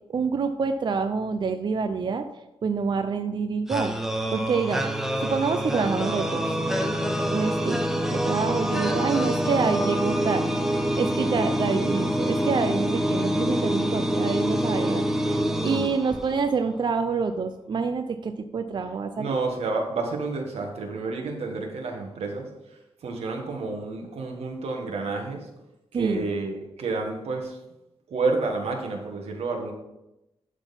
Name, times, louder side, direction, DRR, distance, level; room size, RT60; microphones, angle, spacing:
voice 1, 0.1-2.2 2.6-4.0 4.3-6.6 7.3-7.8 8.1-10.5 10.9-19.4 25.9-26.3, right 5 dB, 50° right, 7 dB, 0.5 m, -27 dB
sound 1, 3.7-16.6, equal, 5° right, 0.8 m, -26 dB
voice 2, 19.2-22.4 23.0-25.4 25.9-27.6 28.1-29.7, right 3 dB, 90° right, 2 dB, 1.6 m, -29 dB
11.5 x 4.0 x 5.4 m, 0.93 s
wide cardioid pair, 115°, 10 cm